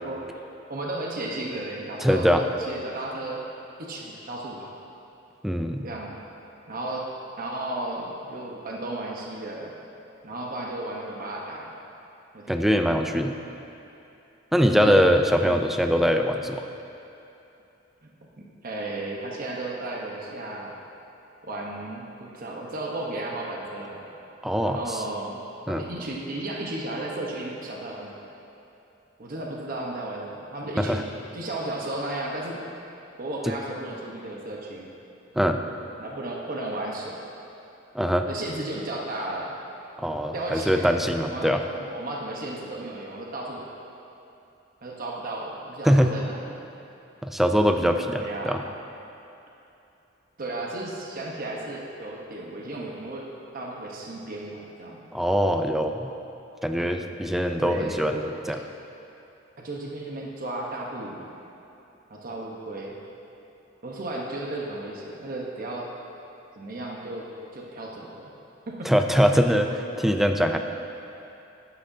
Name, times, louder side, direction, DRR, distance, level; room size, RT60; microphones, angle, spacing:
voice 1, 0.0-0.4 0.7-3.4 3.8-4.7 5.8-6.2 6.7-7.1 7.4-9.7 10.2-11.8 12.3-12.9 14.7-15.0 15.4-15.6 18.4-20.7 21.4-24.0 24.6-25.4 25.7-28.1 29.2-31.1 31.3-32.6 33.2-34.9 36.0-37.1 38.3-39.5 40.3-40.9 41.2-43.7 44.8-46.5 48.2-48.6 50.4-53.2 53.5-55.0 57.6-58.2 59.6-61.3 62.1-62.9 63.8-65.9 66.6-68.3 68.7-68.9, right 2 dB, 50° right, -2 dB, 1.0 m, -34 dB
voice 2, 2.0-2.4 5.4-5.9 12.5-13.3 14.5-16.7 24.4-25.0 25.7-25.8 30.8-31.0 33.5-33.6 35.4-35.6 37.9-38.3 40.0-41.6 45.8-46.2 47.2-48.6 55.1-56.1 56.6-58.2 58.5-58.6 68.9-70.6, equal, ahead, 5 dB, 0.4 m, -22 dB
12.0 x 9.9 x 2.7 m, 2.8 s
head